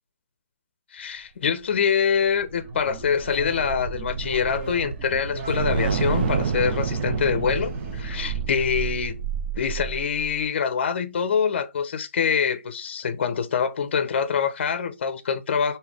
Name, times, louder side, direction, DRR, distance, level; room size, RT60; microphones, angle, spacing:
voice 1, 0.9-9.2 9.5-15.8, left 7 dB, 50° left, 0.6 m, -25 dB
sound 1, 2.0-10.4, right 6 dB, 40° right, 0.7 m, -29 dB
sound 2, 2.5-8.9, right 3 dB, 20° right, 1.2 m, -39 dB
5.1 x 2.8 x 3.3 m
hypercardioid pair, 155°, 8 cm